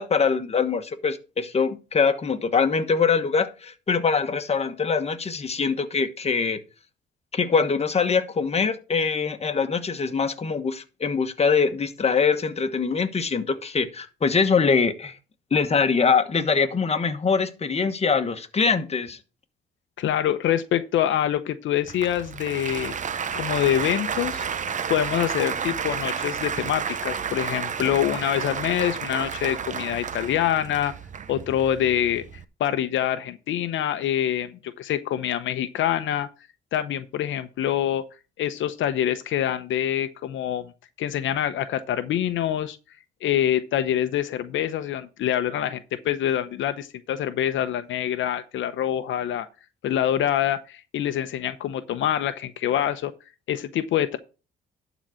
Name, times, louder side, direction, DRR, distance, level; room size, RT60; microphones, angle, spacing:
voice 1, 0.0-6.6 7.3-15.1 15.5-19.2, left 5 dB, 30° left, 1.2 m, -23 dB
voice 2, 20.0-22.9 23.3-24.4 24.9-30.9 31.3-32.2 32.6-36.3 36.7-38.0 38.4-40.7 41.0-42.8 43.2-49.5 49.8-53.1 53.5-54.2, left 11 dB, 75° left, 0.8 m, -25 dB
Applause, 21.8-32.4, right 7 dB, 40° right, 0.7 m, -31 dB
11.5 x 4.1 x 6.3 m
cardioid pair, 90°, 20 cm